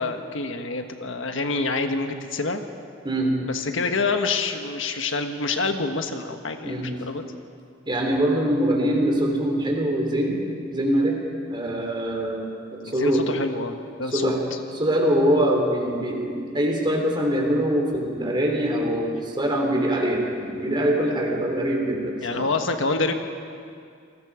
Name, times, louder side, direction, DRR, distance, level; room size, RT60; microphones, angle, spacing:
voice 1, 0.0-2.6 3.4-7.2 12.8-14.3 22.2-23.1, left 3 dB, 80° left, 6 dB, 1.4 m, -27 dB
voice 2, 7.9-10.4 10.7-11.2 11.5-13.2 14.1-14.4 14.7-22.5, right 1 dB, 25° right, 1 dB, 3.6 m, -23 dB
28.5 x 20.0 x 5.0 m, 2.3 s
head